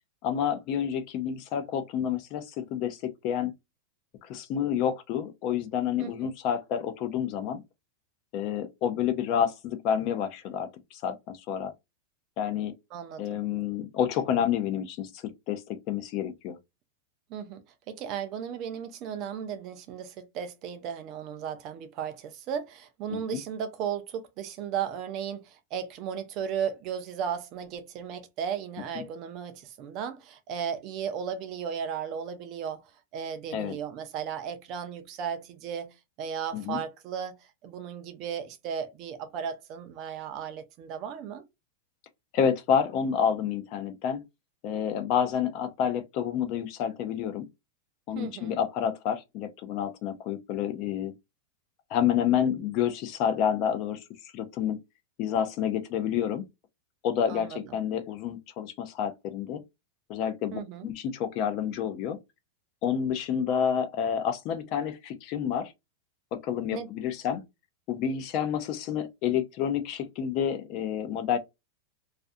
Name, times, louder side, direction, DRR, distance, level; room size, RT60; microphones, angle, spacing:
voice 1, 0.2-3.5 4.2-7.6 8.3-11.7 12.4-12.7 13.2-16.6 23.1-23.4 33.5-33.7 36.5-36.8 42.3-44.2 44.6-47.5 48.1-51.1 51.9-54.8 55.2-56.4 57.0-59.6 60.1-62.2 62.8-65.7 66.3-67.4 67.9-71.4, left 8 dB, 30° left, 0.4 m, -29 dB
voice 2, 6.0-6.3 12.9-13.4 17.3-32.8 33.1-41.4 48.1-48.6 57.3-57.6 60.5-60.9 66.7-66.9, right 8 dB, 30° right, 0.4 m, -35 dB
2.4 x 2.2 x 2.5 m
supercardioid pair, 175°, 0 cm